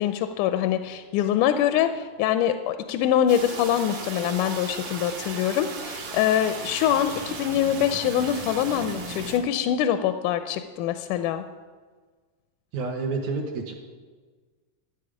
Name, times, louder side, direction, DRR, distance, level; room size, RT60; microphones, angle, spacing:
voice 1, 0.0-11.4, left 10 dB, 80° left, 9 dB, 1.9 m, -24 dB
sound 1, 3.3-9.4, right 4 dB, 90° right, 3.3 m, -36 dB
voice 2, 12.7-13.7, right 4 dB, 70° right, 2 dB, 2.1 m, -29 dB
13.5 x 8.9 x 4.9 m, 1.5 s
omnidirectional pair, 3.7 m